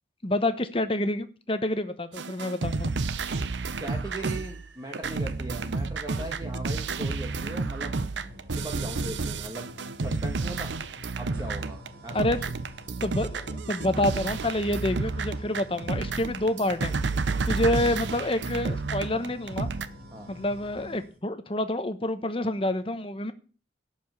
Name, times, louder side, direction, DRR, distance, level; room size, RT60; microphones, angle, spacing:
voice 1, 0.2-2.9 12.1-12.4 13.0-16.9 17.5-19.7 20.3-23.3, left 1 dB, 30° left, 1.0 m, -28 dB
sound 1, 2.2-19.9, right 4 dB, 85° right, 0.7 m, -31 dB
sound 2, 3.3-3.9 5.2-5.3 6.1-21.1, left 1 dB, 65° right, 4.4 m, -47 dB
voice 2, 3.8-8.0 8.5-9.7 10.0-10.7 11.2-12.2 20.1-20.3, right 1 dB, 20° right, 1.4 m, -39 dB
11.5 x 5.2 x 7.6 m
head